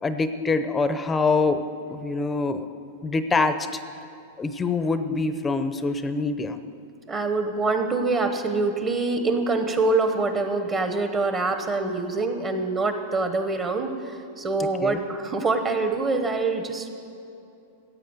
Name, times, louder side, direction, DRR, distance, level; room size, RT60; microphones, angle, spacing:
voice 1, 0.0-1.6 1.9-2.7 3.0-3.8 4.4-6.6 14.8-15.0, left 3 dB, 15° left, 10 dB, 0.6 m, -25 dB
voice 2, 7.1-16.9, right 3 dB, 20° right, 7 dB, 1.0 m, -25 dB
15.0 x 8.6 x 7.9 m, 2.7 s
supercardioid pair, 150°, 0 cm